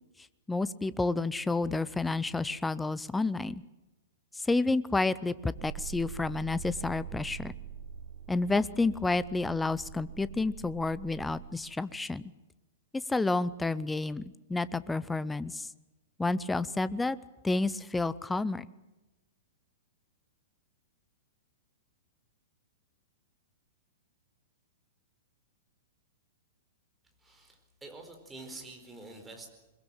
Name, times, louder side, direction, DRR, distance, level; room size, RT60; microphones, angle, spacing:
voice 1, 0.5-3.6 4.4-7.5 8.3-12.2 12.9-14.2 14.5-15.7 16.2-17.2 17.4-18.6, left 3 dB, 5° left, 18 dB, 0.7 m, -30 dB
sound 1, 5.5-11.5, right 8 dB, 55° right, 4.7 m, -44 dB
voice 2, 27.2-29.5, right 2 dB, 10° right, 3 dB, 4.5 m, -47 dB
22.5 x 21.5 x 7.7 m, 1.1 s
figure-of-eight pair, 105°, 0 cm